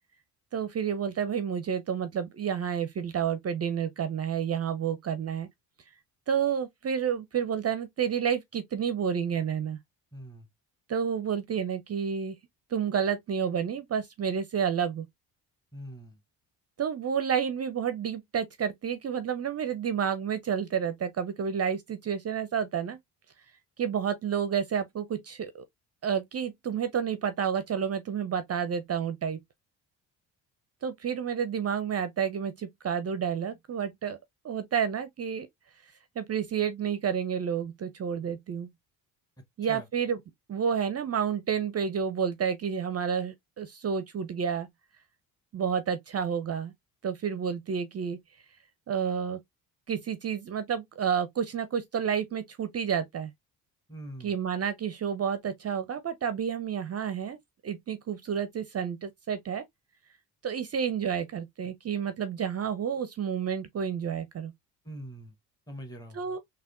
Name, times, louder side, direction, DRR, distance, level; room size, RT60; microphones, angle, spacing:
voice 1, 0.5-5.5 6.3-9.8 10.9-12.4 12.7-15.1 16.8-23.0 23.8-25.6 26.0-29.4 30.8-34.2 34.4-35.5 36.2-38.7 39.6-40.2 40.5-44.7 45.5-46.7 47.0-48.2 48.9-49.4 49.9-53.3 54.2-57.4 57.6-59.6 60.4-64.5 66.1-66.4, right 7 dB, 35° right, 0.5 m, -30 dB
voice 2, 10.1-10.5 15.7-16.2 39.7-39.9 53.9-54.3 64.8-65.3 65.7-66.2, equal, 10° left, 0.9 m, -42 dB
3.5 x 2.2 x 2.4 m
hypercardioid pair, 55°, 47 cm